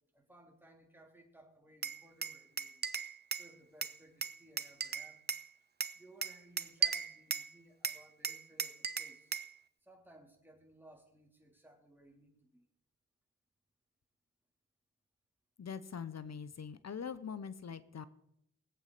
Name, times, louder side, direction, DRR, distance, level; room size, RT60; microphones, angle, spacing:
voice 1, 0.1-2.8 3.3-5.3 5.9-9.3 9.8-12.7, right 1 dB, 5° right, 0 dB, 3.6 m, -61 dB
Glass, 1.8-3.5 3.8-5.5 5.8-7.5 7.8-9.5, right 6 dB, 30° right, 0.6 m, -37 dB
voice 2, 15.6-18.1, left 6 dB, 50° left, 15 dB, 1.1 m, -43 dB
19.5 x 8.1 x 4.3 m, 0.76 s
supercardioid pair, 40°, 33 cm